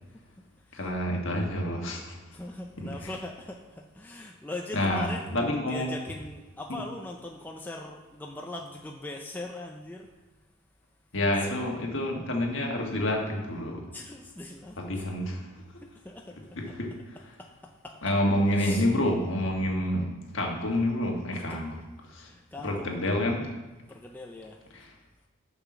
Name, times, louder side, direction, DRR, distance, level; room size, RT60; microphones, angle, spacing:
voice 1, 0.1-0.9 2.3-10.1 11.4-11.5 13.9-15.1 15.8-16.6 17.4-18.1 18.5-18.9 21.3-21.6 22.2-23.0 23.9-24.6, left 2 dB, 10° left, 1 dB, 0.4 m, -41 dB
voice 2, 0.7-2.4 2.8-2.9 4.7-5.9 6.7-6.8 11.1-13.8 14.8-15.5 15.7-15.8 16.6-16.9 18.0-21.7 22.0-22.3 22.6-23.5 24.7-24.9, left 1 dB, 60° left, 0 dB, 1.5 m, -28 dB
6.8 x 5.7 x 6.1 m, 1.2 s
head